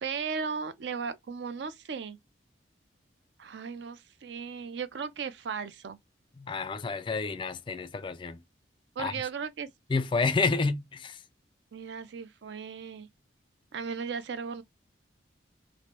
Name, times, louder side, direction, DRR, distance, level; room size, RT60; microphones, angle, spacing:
voice 1, 0.0-2.2 3.4-6.0 9.0-9.7 11.7-13.1 13.7-14.6, right 6 dB, 65° right, 0.4 m, -36 dB
voice 2, 6.4-8.4 9.0-9.1 9.9-11.2, left 4 dB, 25° left, 0.3 m, -29 dB
3.0 x 2.5 x 2.8 m
head